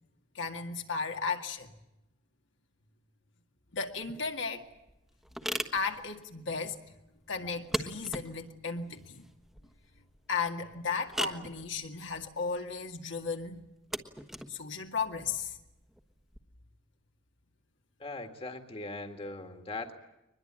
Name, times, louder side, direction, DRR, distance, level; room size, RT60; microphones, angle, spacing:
voice 1, 0.3-1.7 3.7-4.7 5.7-6.8 7.3-9.2 10.3-13.6 14.5-15.6, left 5 dB, 70° left, 2.1 m, -35 dB
sound 1, 4.0-16.4, equal, ahead, 1.3 m, -41 dB
voice 2, 18.0-19.9, left 2 dB, 30° left, 1.9 m, -40 dB
23.0 x 21.0 x 8.8 m
head